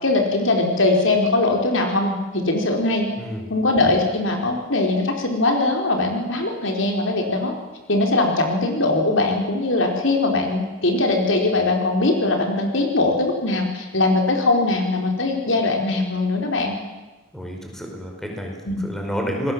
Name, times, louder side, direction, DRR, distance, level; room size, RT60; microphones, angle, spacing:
voice 1, 0.0-3.1 3.5-7.5 7.9-16.8 18.6-18.8, left 2 dB, 70° left, 3 dB, 4.5 m, -21 dB
voice 2, 17.3-19.5, equal, ahead, 1 dB, 5.0 m, -30 dB
28.0 x 20.5 x 7.6 m, 1.2 s
head